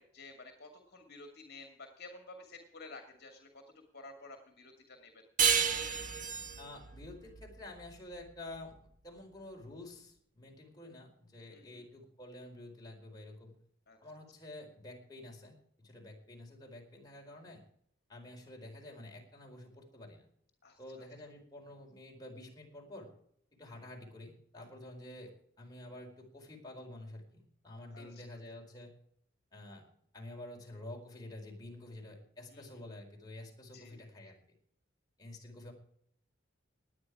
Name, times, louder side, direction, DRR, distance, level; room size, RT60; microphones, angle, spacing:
voice 1, 0.0-3.6 3.9-5.1 11.5-11.8 13.9-14.0 20.6-20.8 27.9-28.2 32.5-32.7 33.7-34.0, left 3 dB, 55° left, 4 dB, 2.4 m, -52 dB
sound 1, 5.4-8.6, right 7 dB, 40° right, 1.7 m, -32 dB
voice 2, 6.6-13.5 14.0-17.6 18.1-20.2 20.8-23.1 23.6-28.9 29.5-29.8 30.1-34.4 35.2-35.7, left 1 dB, 20° left, -1 dB, 4.6 m, -49 dB
19.0 x 9.8 x 4.9 m, 0.64 s
head